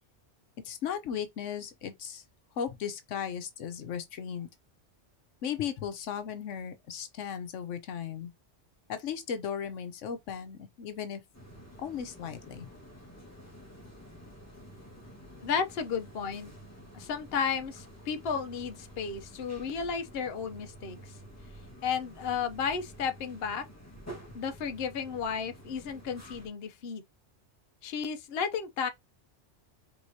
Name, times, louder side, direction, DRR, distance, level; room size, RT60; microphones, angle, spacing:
voice 1, 0.6-2.2 2.6-4.5 5.4-8.3 8.9-11.2 11.8-12.7, left 8 dB, 90° left, 1.1 m, -36 dB
sound 1, 11.3-26.5, right 1 dB, 15° left, 1.5 m, -50 dB
voice 2, 15.4-16.5 16.9-21.1 21.8-23.6 24.3-27.0 27.8-28.9, left 6 dB, 60° left, 0.9 m, -33 dB
4.7 x 3.6 x 2.7 m
omnidirectional pair, 1.2 m